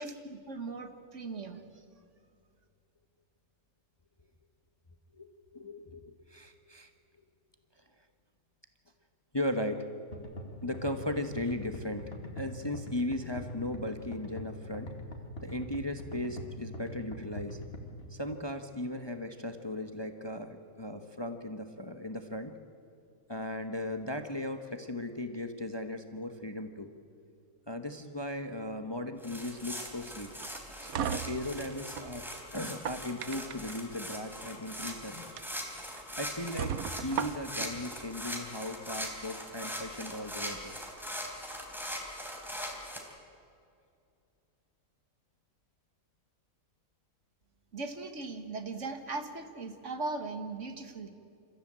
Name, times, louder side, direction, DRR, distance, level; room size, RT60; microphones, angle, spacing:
voice 1, 0.0-1.6 47.7-51.1, right 3 dB, 55° right, 7 dB, 1.8 m, -39 dB
voice 2, 5.1-6.9 9.3-9.9 10.6-14.9 15.4-17.6 18.1-22.5 23.3-26.9 27.7-30.3 30.8-32.3 32.5-35.3 36.1-36.7 37.0-40.7, left 1 dB, 20° left, 7 dB, 1.0 m, -37 dB
sound 1, 10.1-18.1, equal, 45° left, 2.5 m, -43 dB
sound 2, 29.2-43.0, equal, ahead, 3.5 m, -41 dB
sound 3, 30.4-32.1 32.6-33.7 34.7-34.9 35.4-35.5 36.0-36.1 36.6-37.7, right 8 dB, 80° right, 1.3 m, -36 dB
28.0 x 15.0 x 8.8 m, 2.5 s
omnidirectional pair, 1.5 m